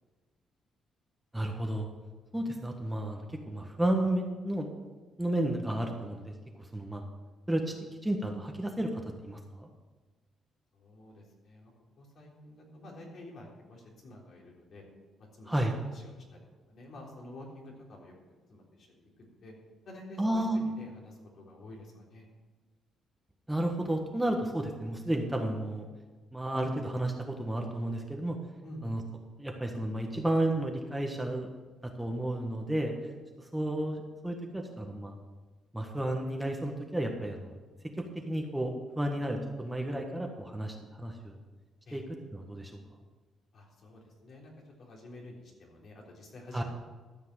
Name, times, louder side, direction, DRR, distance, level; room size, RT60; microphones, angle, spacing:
voice 1, 1.3-1.9 2.3-4.7 5.2-7.0 7.5-7.8 8.0-9.7 15.5-15.7 20.2-20.6 23.5-25.9 26.3-28.4 28.8-29.0 29.4-31.5 31.8-33.0 33.5-35.1 35.7-37.5 38.3-41.4 41.9-42.0 42.3-42.8 46.5-46.6, right 1 dB, 10° right, 2 dB, 1.4 m, -32 dB
voice 2, 10.7-14.9 15.2-16.4 16.7-19.5 19.9-22.3 28.6-28.9 41.8-42.0 43.5-44.5 44.8-46.6, left 1 dB, 55° left, -2 dB, 3.6 m, -50 dB
13.5 x 5.8 x 7.6 m, 1.3 s
cardioid pair, 90°, 0 cm